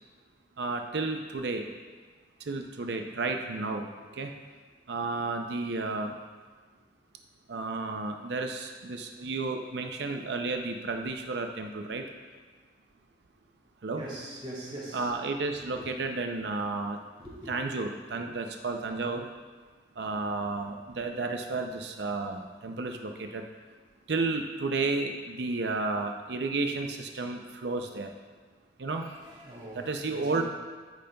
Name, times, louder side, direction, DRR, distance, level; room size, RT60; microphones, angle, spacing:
voice 1, 0.6-1.6 2.5-3.9 4.2-4.3 4.9-6.1 7.5-12.0 13.8-14.0 14.9-17.0 17.5-19.3 20.0-23.4 24.1-28.1 28.8-29.0 29.7-30.4, right 3 dB, 65° right, 4 dB, 0.5 m, -32 dB
voice 2, 14.0-15.1 15.7-15.9 17.2-17.5 28.9-30.4, right 1 dB, 30° right, -5 dB, 2.0 m, -42 dB
14.0 x 5.1 x 2.3 m, 1.4 s
head